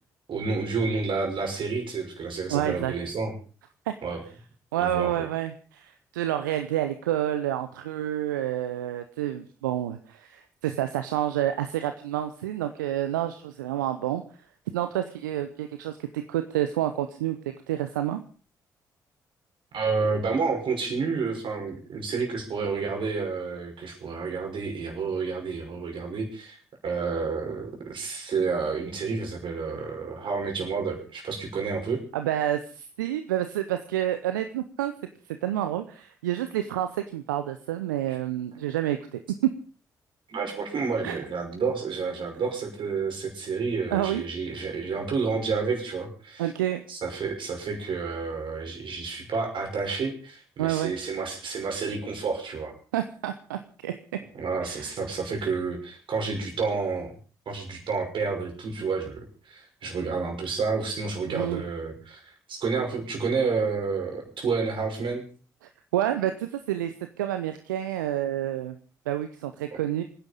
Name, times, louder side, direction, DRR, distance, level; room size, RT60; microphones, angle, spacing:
voice 1, 0.3-3.3 4.0-4.2 4.8-5.3 19.7-26.6 26.8-32.0 38.1-38.2 40.3-46.5 46.9-52.7 54.4-57.1 57.5-65.3 69.7-69.8, right 4 dB, 55° right, 2 dB, 5.9 m, -30 dB
voice 2, 2.5-2.9 3.9-4.0 4.7-14.2 14.7-18.2 32.1-34.9 35.4-39.5 41.0-41.1 43.9-44.2 46.4-46.8 50.6-50.9 52.9-54.2 54.6-54.9 61.3-61.6 65.9-68.8 69.1-70.0, right 12 dB, 80° right, 9 dB, 0.7 m, -29 dB
24.5 x 10.0 x 5.3 m, 0.40 s
figure-of-eight pair, 40°, 10 cm